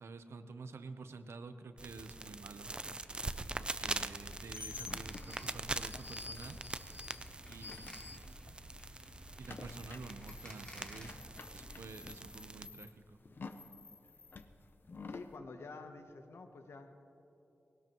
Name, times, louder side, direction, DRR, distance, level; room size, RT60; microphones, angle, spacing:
voice 1, 0.0-2.7 3.6-6.6 7.5-8.7 9.4-11.2 11.5-13.2, right 4 dB, 85° right, 9 dB, 0.8 m, -50 dB
sound 1, 1.8-12.7, right 2 dB, 25° right, 0.4 m, -43 dB
sound 2, 3.0-11.0, left 1 dB, 25° left, 2.6 m, -54 dB
sound 3, 4.2-8.7 8.9-15.3, left 4 dB, 55° left, 0.7 m, -50 dB
voice 2, 15.1-17.0, left 3 dB, 85° left, 6 dB, 1.0 m, -49 dB
19.5 x 18.0 x 3.0 m, 2.9 s
wide cardioid pair, 125°, 4 cm